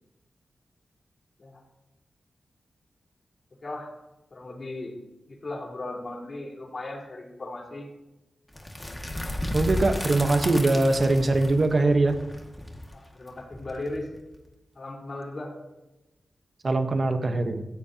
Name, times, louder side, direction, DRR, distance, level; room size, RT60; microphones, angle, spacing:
voice 1, 3.6-3.9 4.3-4.9 5.3-7.9 12.9-14.1 14.8-15.5, left 2 dB, 45° left, -2 dB, 4.1 m, -37 dB
sound 1, 8.5-14.4, left 1 dB, 10° left, 2.0 m, -33 dB
voice 2, 9.5-12.1 16.6-17.6, right 2 dB, 45° right, 6 dB, 1.1 m, -22 dB
16.5 x 16.0 x 2.9 m, 1.0 s
wide cardioid pair, 110°, 0 cm